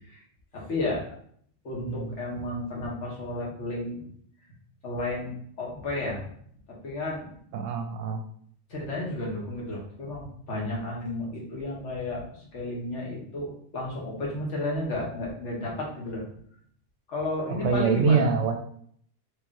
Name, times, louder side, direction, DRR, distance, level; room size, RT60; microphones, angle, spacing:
voice 1, 0.5-1.0 1.6-4.0 4.8-5.3 5.6-6.3 6.7-7.3 8.7-16.2 17.1-18.3, left 2 dB, 65° left, -3 dB, 1.4 m, -32 dB
voice 2, 7.5-8.2 17.6-18.6, right 6 dB, 70° right, 5 dB, 0.9 m, -24 dB
3.2 x 3.1 x 3.6 m, 0.63 s
omnidirectional pair, 1.4 m